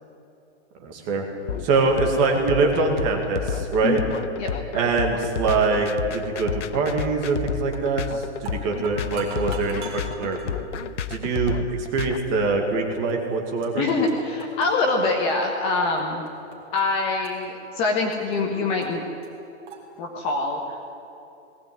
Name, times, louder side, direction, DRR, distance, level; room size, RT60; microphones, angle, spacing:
voice 1, 0.8-1.3 1.6-4.0 4.7-10.4 11.1-13.8, right 4 dB, 20° right, 2 dB, 2.1 m, -24 dB
sound 1, 1.5-12.2, left 7 dB, 75° left, 1.3 m, -31 dB
sound 2, 7.7-8.0 8.3-10.5 11.2-11.4 12.2-12.3 13.1-13.2 13.4-14.1 14.4-16.0 16.3-16.8 17.2-18.4 18.8-18.9 19.2-19.3 19.7-19.8, right 4 dB, 40° right, 4.2 m, -41 dB
voice 2, 13.8-16.2 16.7-19.0 20.0-20.6, left 3 dB, 15° left, 1 dB, 1.4 m, -24 dB
20.0 x 18.0 x 9.4 m, 2.8 s
hypercardioid pair, 175°, 36 cm